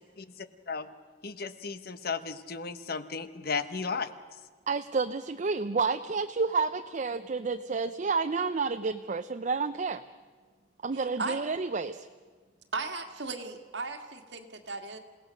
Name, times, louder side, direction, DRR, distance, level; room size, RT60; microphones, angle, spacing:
voice 1, 1.2-4.1, left 5 dB, 55° left, 11 dB, 1.0 m, -34 dB
voice 2, 4.7-10.0 10.8-12.1, right 4 dB, 45° right, 9 dB, 0.5 m, -30 dB
voice 3, 10.9-11.4 12.7-15.0, right 3 dB, 75° right, 5 dB, 1.9 m, -36 dB
28.0 x 17.5 x 6.4 m, 1.5 s
head